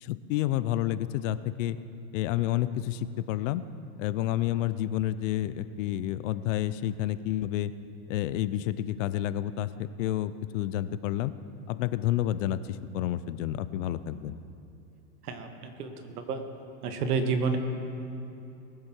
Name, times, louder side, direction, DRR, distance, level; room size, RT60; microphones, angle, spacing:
voice 1, 0.0-1.8 2.1-3.6 4.0-7.7 8.1-11.3 11.7-14.4, left 13 dB, 55° left, 14 dB, 0.6 m, -29 dB
voice 2, 15.2-16.4 16.8-17.6, right 5 dB, 90° right, 6 dB, 1.5 m, -30 dB
20.5 x 7.6 x 4.5 m, 2.8 s
supercardioid pair, 135°, 45 cm